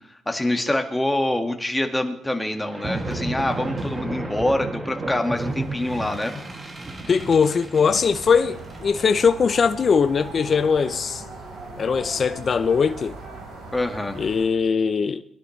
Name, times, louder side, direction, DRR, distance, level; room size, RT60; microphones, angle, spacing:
voice 1, 0.1-6.3 13.7-14.2, left 1 dB, 10° left, 1.8 m, -25 dB
sound 1, 2.7-13.2, right 2 dB, 30° right, 2.3 m, -34 dB
voice 2, 7.1-11.2 11.8-13.2 14.2-15.2, left 6 dB, 45° left, 0.6 m, -20 dB
sound 2, 8.0-14.4, right 3 dB, 85° right, 5.0 m, -40 dB
22.0 x 11.5 x 3.2 m
cardioid pair, 90°, 0 cm